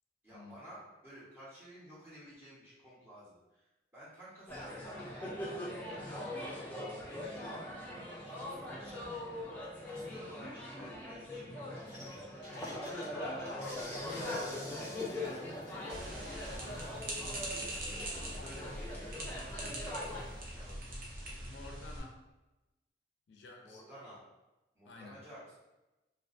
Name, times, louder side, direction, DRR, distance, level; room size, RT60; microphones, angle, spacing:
voice 1, 0.2-3.7 3.9-5.2 5.9-7.6 8.2-9.1 9.8-13.3 18.4-19.2 19.9-20.8 23.6-24.2 24.7-25.6, equal, 10° right, -9 dB, 0.8 m, -54 dB
sound 1, 4.5-20.2, left 1 dB, 10° left, 0.4 m, -41 dB
sound 2, 11.8-21.0, equal, 85° right, 0.9 m, -53 dB
voice 2, 14.0-16.9 17.5-18.7 20.3-20.5 21.4-22.2 23.3-23.8 24.8-25.2, left 3 dB, 75° left, 1 dB, 0.4 m, -52 dB
sound 3, 15.9-22.0, right 1 dB, 50° right, 0.6 m, -42 dB
2.3 x 2.3 x 2.4 m, 1.0 s
head